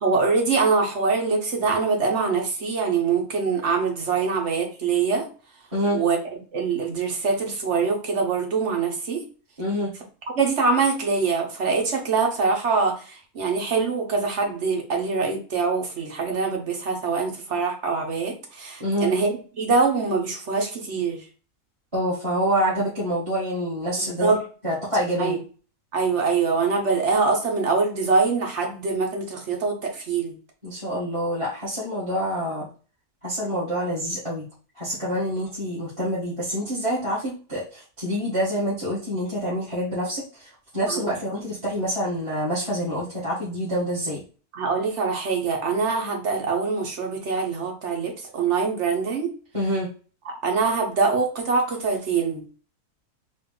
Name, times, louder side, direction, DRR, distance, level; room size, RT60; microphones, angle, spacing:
voice 1, 0.0-5.3 5.9-9.2 10.3-21.2 24.0-24.4 25.2-25.4 25.9-30.4 40.8-41.1 44.5-49.3 50.2-52.5, right 4 dB, 50° right, 1 dB, 1.2 m, -24 dB
voice 2, 5.7-6.0 9.6-9.9 18.8-19.1 21.9-24.3 24.6-25.4 30.6-32.7 33.2-34.5 34.8-40.5 40.7-44.2 49.5-49.9, equal, 20° right, -9 dB, 1.6 m, -26 dB
4.1 x 2.5 x 3.8 m, 0.37 s
omnidirectional pair, 1.6 m